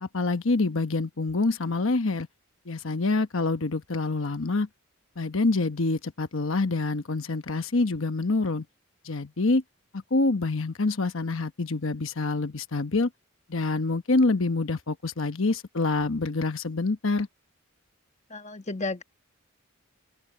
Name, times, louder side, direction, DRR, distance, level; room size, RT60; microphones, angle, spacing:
voice 1, 0.0-2.3 2.7-4.7 5.2-8.6 9.0-9.6 9.9-13.1 13.5-17.3, left 3 dB, 60° left, 1.1 m, -26 dB
voice 2, 18.3-19.0, left 3 dB, 30° left, 1.2 m, -32 dB
open air
head